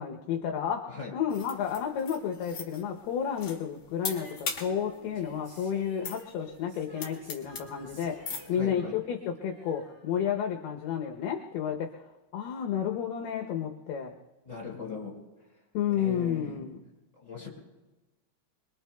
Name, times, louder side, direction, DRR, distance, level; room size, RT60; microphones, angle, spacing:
voice 1, 0.0-12.1 12.3-14.2 15.7-16.8, left 8 dB, 75° left, 2 dB, 2.6 m, -31 dB
sound 1, 1.3-8.5, left 5 dB, 45° left, 2.0 m, -40 dB
Female singing, 4.0-10.7 11.0-11.1, right 3 dB, 40° right, 3.2 m, -53 dB
voice 2, 8.5-8.9 14.4-15.1 15.9-16.6 17.2-17.5, left 5 dB, 10° left, -1 dB, 4.8 m, -39 dB
26.0 x 22.5 x 2.3 m, 1.1 s
omnidirectional pair, 5.5 m